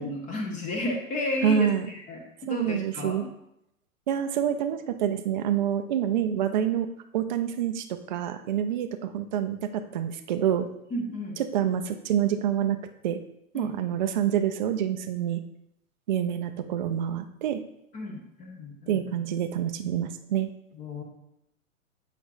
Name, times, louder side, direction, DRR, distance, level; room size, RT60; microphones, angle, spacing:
voice 1, 0.0-3.3 10.9-11.4 13.5-13.9 17.9-19.3 20.7-21.0, left 1 dB, 15° left, 1 dB, 1.0 m, -33 dB
voice 2, 1.4-1.9 2.5-3.3 4.1-10.7 11.5-12.8 13.0-13.2 13.5-15.4 16.1-17.6 18.9-20.5, right 9 dB, 35° right, 8 dB, 0.4 m, -27 dB
7.7 x 5.0 x 2.5 m, 0.79 s
figure-of-eight pair, 115°, 42 cm